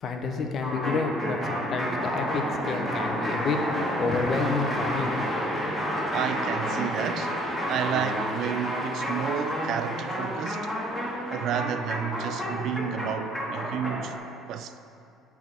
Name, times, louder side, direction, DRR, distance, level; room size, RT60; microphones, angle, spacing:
voice 1, 0.0-3.7 4.0-5.2, left 4 dB, 50° left, 0.7 m, -29 dB
sound 1, 0.6-14.1, equal, 10° left, 1.7 m, -30 dB
voice 2, 6.1-7.4 7.7-10.7 11.3-14.2 14.5-14.7, right 8 dB, 65° right, 0.3 m, -31 dB
7.1 x 3.5 x 6.2 m
hypercardioid pair, 70°, 0 cm